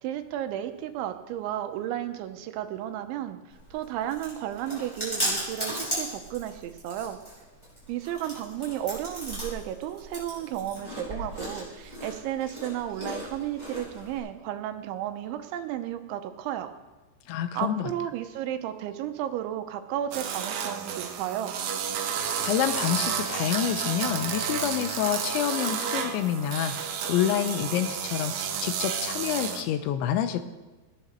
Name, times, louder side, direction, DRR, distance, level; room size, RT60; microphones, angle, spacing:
voice 1, 0.0-3.4 3.7-7.2 7.9-16.7 17.5-21.6, right 11 dB, 90° right, 8 dB, 3.2 m, -33 dB
Chewing mastication, 3.5-14.2, equal, 5° left, 5.8 m, -36 dB
voice 2, 17.3-17.9 22.1-30.4, left 10 dB, 90° left, 10 dB, 3.1 m, -28 dB
sound 1, 20.1-29.6, right 7 dB, 70° right, 2.3 m, -31 dB
16.0 x 10.0 x 6.5 m, 1.2 s
omnidirectional pair, 5.3 m